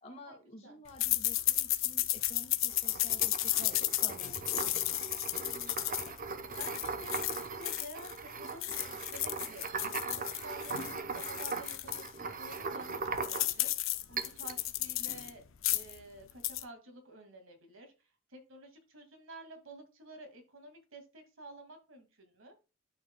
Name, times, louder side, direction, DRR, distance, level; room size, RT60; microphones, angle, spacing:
voice 1, 0.0-4.6, left 1 dB, 30° left, 1 dB, 1.9 m, -51 dB
sound 1, 1.0-8.2 8.5-12.1 12.5-12.6 12.9-15.3 15.6-16.0 16.3-16.6, left 15 dB, 70° left, 0.6 m, -33 dB
sound 2, 2.7-13.7 14.2-14.6, right 4 dB, 40° right, 0.7 m, -40 dB
voice 2, 5.3-15.4 15.7-22.6, right 1 dB, 70° right, 5 dB, 2.1 m, -51 dB
12.0 x 4.6 x 2.2 m, 0.30 s
head